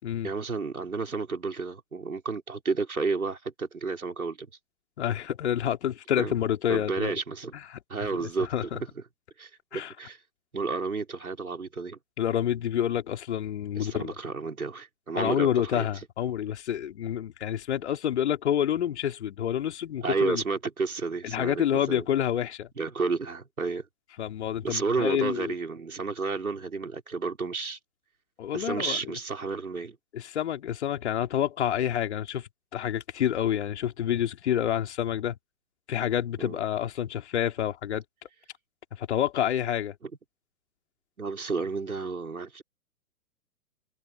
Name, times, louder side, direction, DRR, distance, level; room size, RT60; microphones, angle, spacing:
voice 1, 0.2-4.5 6.2-6.3 6.7-7.5 7.9-8.7 9.4-10.2 10.5-12.0 13.8-15.9 20.0-22.0 22.8-23.9 24.6-27.8 28.5-30.0 36.4-36.6 40.0-40.1 41.2-42.6, right 4 dB, 75° right, 5.5 m, -31 dB
voice 2, 5.0-7.2 7.5-7.8 8.1-8.8 9.7-9.9 12.2-14.1 15.1-20.4 21.2-22.7 24.2-25.5 28.4-29.0 30.1-35.4 35.9-38.0 39.0-39.9, left 10 dB, 50° left, 3.3 m, -28 dB
figure-of-eight pair, 120°, 43 cm